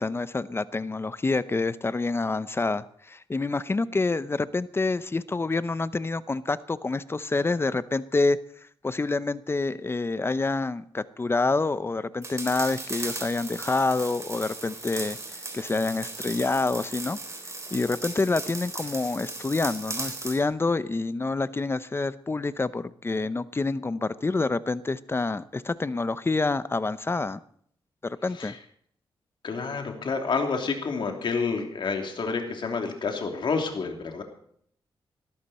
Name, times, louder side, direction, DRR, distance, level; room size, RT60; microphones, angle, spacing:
voice 1, 0.0-8.4 8.8-15.2 15.5-17.2 17.7-27.4 28.0-28.6, left 3 dB, 25° left, 15 dB, 0.6 m, -27 dB
sound 1, 12.2-20.4, right 3 dB, 30° right, 3.5 m, -37 dB
voice 2, 29.4-34.2, left 4 dB, 60° left, 3 dB, 3.0 m, -29 dB
20.0 x 13.5 x 4.3 m, 0.64 s
wide cardioid pair, 100°, 9 cm